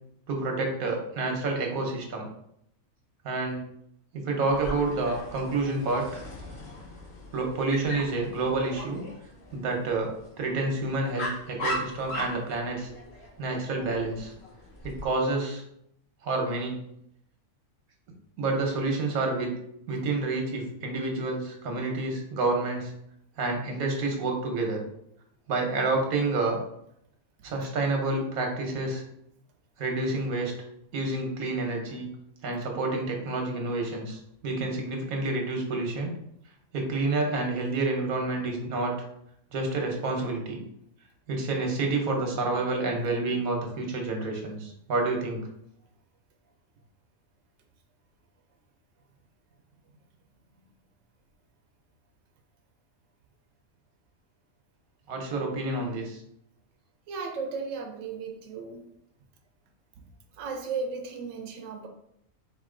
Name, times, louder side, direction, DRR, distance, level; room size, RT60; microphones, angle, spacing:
voice 1, 0.3-2.3 3.2-3.6 4.1-6.0 7.3-9.0 9.5-12.9 13.4-14.3 14.8-15.6 16.2-16.8 18.4-19.5 19.9-22.9 23.4-24.8 25.5-26.6 27.4-29.0 29.8-30.5 30.9-32.1 32.4-36.1 36.7-38.9 39.5-40.6 41.3-45.4 55.1-56.2, right 3 dB, 90° right, 1 dB, 1.4 m, -29 dB
Dog, 4.5-15.1, equal, 50° left, 1.3 m, -39 dB
voice 2, 57.1-58.9 60.4-61.9, right 4 dB, 70° right, 3 dB, 1.0 m, -35 dB
4.5 x 2.7 x 3.7 m, 0.75 s
omnidirectional pair, 1.4 m